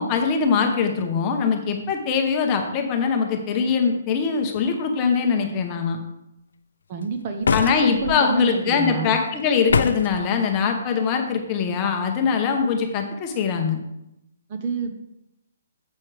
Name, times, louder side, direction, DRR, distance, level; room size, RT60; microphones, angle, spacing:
voice 1, 0.0-6.0 7.5-13.8, left 5 dB, 15° left, 3 dB, 0.8 m, -22 dB
voice 2, 6.9-9.2 14.5-15.0, right 4 dB, 25° right, 5 dB, 0.7 m, -29 dB
sound 1, 7.4-8.2 9.7-10.2, left 5 dB, 70° left, 0.5 m, -22 dB
9.0 x 7.3 x 3.4 m, 0.85 s
hypercardioid pair, 180°, 0 cm